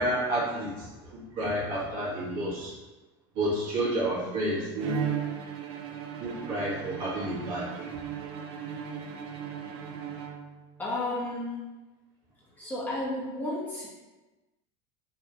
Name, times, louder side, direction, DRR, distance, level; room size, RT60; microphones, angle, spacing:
voice 1, 0.0-2.7 3.3-5.0 6.2-7.9, right 1 dB, 65° right, -7 dB, 1.5 m, -30 dB
Bowed string instrument, 4.8-10.8, right 8 dB, 45° right, 0.4 m, -37 dB
voice 2, 10.8-11.6 12.6-13.9, left 1 dB, 15° left, -7 dB, 0.9 m, -32 dB
3.2 x 3.1 x 3.0 m, 1.2 s
supercardioid pair, 135°, 14 cm